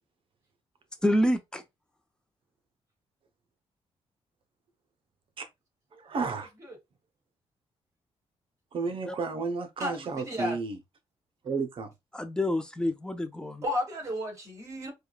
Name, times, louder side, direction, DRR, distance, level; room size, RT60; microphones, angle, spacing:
voice 1, 1.0-1.6 9.1-9.2 12.1-13.6, equal, 5° left, 0.6 m, -27 dB
voice 2, 6.0-6.5 8.7-10.8 11.4-11.9, right 4 dB, 50° right, 0.8 m, -32 dB
voice 3, 9.8-10.6 13.6-14.9, left 1 dB, 30° right, 2.3 m, -33 dB
4.7 x 2.2 x 2.3 m
cardioid pair, 105°, 11 cm